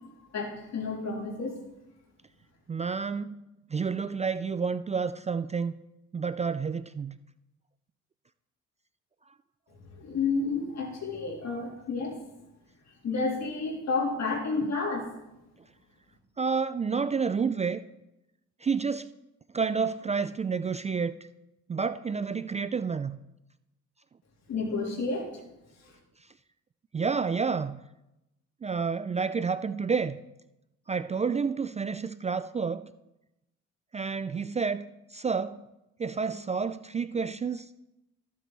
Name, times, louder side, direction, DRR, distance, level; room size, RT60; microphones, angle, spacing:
voice 1, 0.3-1.6 9.9-12.2 13.0-15.1 24.5-25.3 25.8-25.9, left 4 dB, 60° left, 3.2 m, -30 dB
voice 2, 2.7-3.4 3.7-5.7 6.1-7.2 14.6-14.7 16.4-17.8 18.6-19.1 19.5-21.2 21.7-23.2 26.2-26.3 26.9-27.8 28.6-30.2 30.9-32.9 33.9-35.6 36.0-37.7, right 5 dB, 25° right, 0.3 m, -29 dB
14.0 x 7.5 x 4.0 m
cardioid pair, 90°, 30 cm